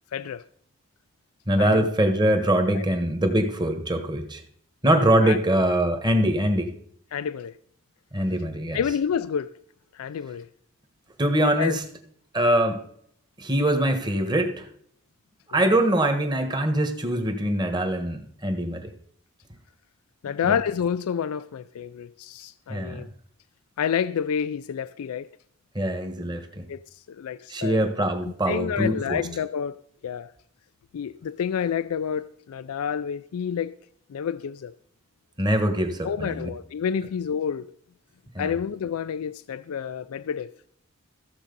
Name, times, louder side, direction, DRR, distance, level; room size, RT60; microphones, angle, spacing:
voice 1, 0.1-0.4 1.6-1.9 2.7-2.9 4.8-5.4 7.1-7.6 8.7-9.5 9.9-10.5 11.6-11.8 15.5-15.6 20.2-23.1 23.8-25.3 26.7-27.8 28.2-29.8 30.0-30.3 30.9-33.7 34.1-34.7 36.0-37.7 38.4-40.5, left 7 dB, 90° left, 0.4 m, -29 dB
voice 2, 1.5-4.4 4.8-6.7 8.1-8.8 11.2-11.8 12.3-12.8 13.4-14.7 15.5-18.9 20.5-20.6 22.7-23.0 25.7-26.7 27.5-29.2 35.4-36.5 38.3-38.5, right 1 dB, 20° right, 1.3 m, -23 dB
14.5 x 7.3 x 5.3 m
head